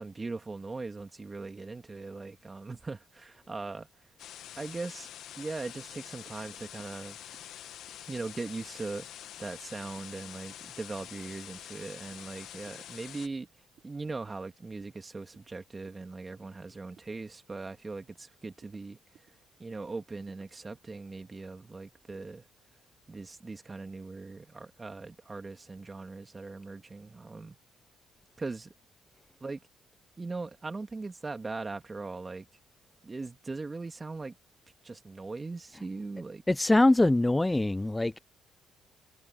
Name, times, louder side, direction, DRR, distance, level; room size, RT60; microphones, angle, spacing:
voice 1, 0.0-3.9 4.6-5.1 5.4-7.2 8.1-9.1 9.4-13.5 13.8-19.3 19.6-22.5 23.1-27.6 28.4-28.7 29.4-29.6 30.2-32.5 33.0-34.3 34.8-36.4, right 3 dB, 25° right, 2.6 m, -40 dB
sound 1, 4.2-13.3, left 11 dB, 75° left, 1.5 m, -46 dB
sound 2, 5.7-5.9 6.3-6.4 6.8-7.0 7.3-7.5 7.9-8.0 8.4-8.5 8.9-9.0 9.4-9.6 10.0-10.1 10.5-10.6 11.0-11.2 11.6-11.7 12.1-12.3 12.7-12.8 13.2-13.4 13.8-13.9 14.3-14.5 14.8-15.0 15.3-15.5 15.9-16.0 16.4-16.6 17.0-17.1 17.5-17.7 18.1-18.2 18.6-18.8 19.1-19.3 19.7-19.9 20.3-20.5, right 10 dB, 65° right, 3.0 m, -61 dB
voice 2, 36.5-38.2, left 2 dB, 15° left, 0.4 m, -23 dB
supercardioid pair, 75°, 0 cm